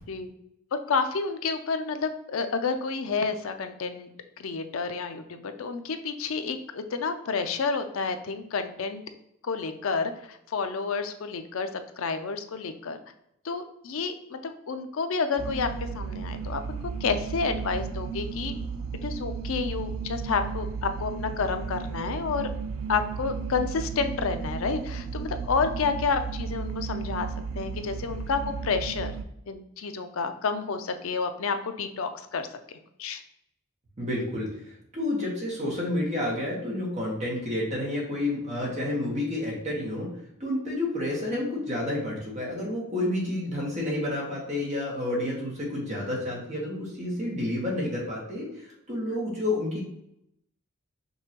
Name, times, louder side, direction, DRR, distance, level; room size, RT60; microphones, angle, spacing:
voice 1, 0.7-4.1 4.4-9.0 9.4-13.0 13.4-18.5 19.0-22.5 22.9-27.3 27.5-29.1 29.5-32.5 33.0-33.2, left 5 dB, 70° left, 8 dB, 0.5 m, -30 dB
sound 1, 15.4-29.2, right 5 dB, 75° right, 0.4 m, -34 dB
voice 2, 34.0-40.1 40.4-49.8, left 1 dB, 30° right, -3 dB, 1.4 m, -30 dB
5.4 x 2.9 x 2.9 m, 0.78 s
head